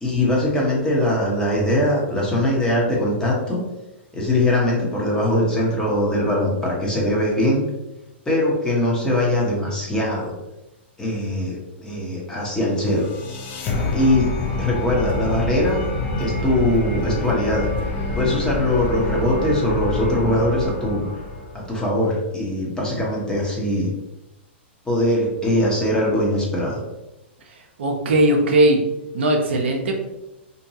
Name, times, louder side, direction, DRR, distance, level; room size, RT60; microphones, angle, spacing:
voice 1, 0.0-3.6 4.1-7.6 8.3-10.3 11.0-13.1 13.9-14.3 14.6-15.8 16.2-17.7 18.1-21.1 21.5-23.9 24.9-26.8, left 1 dB, 10° left, -4 dB, 0.8 m, -21 dB
sound 1, 12.6-21.8, left 2 dB, 35° left, 0.5 m, -27 dB
voice 2, 27.8-28.8 29.1-29.9, right 1 dB, 70° right, 1 dB, 0.5 m, -18 dB
2.6 x 2.2 x 2.7 m, 0.95 s
hypercardioid pair, 120°, 6 cm